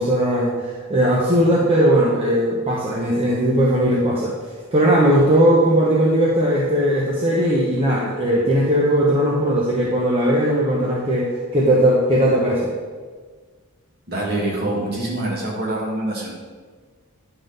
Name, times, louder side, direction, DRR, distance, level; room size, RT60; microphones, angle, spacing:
voice 1, 0.0-4.3 4.7-12.7, right 1 dB, 25° right, -5 dB, 1.0 m, -18 dB
voice 2, 14.1-16.4, right 1 dB, 45° right, -4 dB, 2.1 m, -25 dB
9.9 x 4.0 x 5.2 m, 1.5 s
head